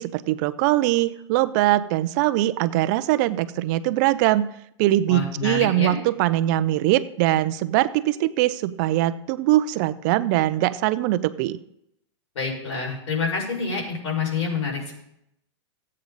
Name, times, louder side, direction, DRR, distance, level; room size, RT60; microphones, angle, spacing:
voice 1, 0.0-4.5 4.8-11.6, right 15 dB, 40° right, 14 dB, 0.5 m, -22 dB
voice 2, 5.1-6.0 12.4-15.0, left 5 dB, 80° left, -2 dB, 5.2 m, -27 dB
15.0 x 8.5 x 4.0 m, 0.78 s
supercardioid pair, 150°, 15 cm